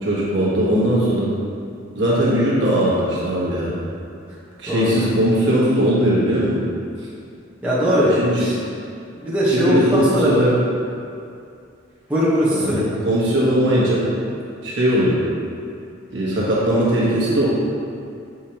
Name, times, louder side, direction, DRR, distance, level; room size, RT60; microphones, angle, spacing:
voice 1, 0.0-1.4 1.9-3.7 4.6-6.6 8.0-8.5 9.5-10.6 12.5-14.1 14.6-15.2 16.1-17.5, right 1 dB, 60° right, -7 dB, 1.4 m, -19 dB
voice 2, 4.7-5.0 7.6-8.5 9.2-10.3 12.1-12.9, equal, 5° right, -11 dB, 1.1 m, -19 dB
7.1 x 4.9 x 2.9 m, 2.4 s
head